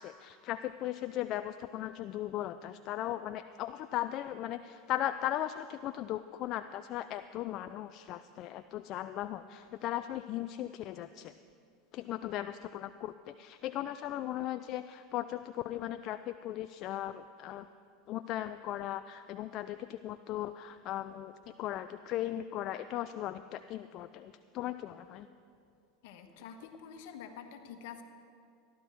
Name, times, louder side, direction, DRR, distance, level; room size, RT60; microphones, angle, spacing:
voice 1, 0.0-11.3 11.9-17.7 18.1-25.3, left 13 dB, 50° left, 11 dB, 0.3 m, -37 dB
voice 2, 26.0-28.0, left 7 dB, 70° left, 7 dB, 1.2 m, -47 dB
14.5 x 11.5 x 4.5 m, 2.4 s
hypercardioid pair, 105°, 0 cm